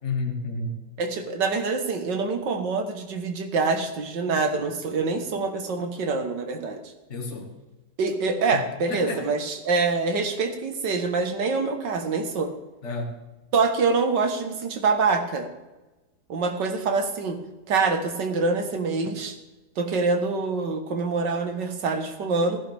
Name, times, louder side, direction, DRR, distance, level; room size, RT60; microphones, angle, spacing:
voice 1, 0.0-0.8 7.1-7.5 8.5-9.3 12.8-13.2, left 3 dB, 45° left, 2 dB, 1.9 m, -31 dB
voice 2, 1.0-6.8 8.0-12.5 13.5-15.5 16.3-17.4 17.7-19.4 19.8-22.6, right 4 dB, 90° right, 5 dB, 2.0 m, -25 dB
16.5 x 10.5 x 3.5 m, 1.1 s
omnidirectional pair, 1.8 m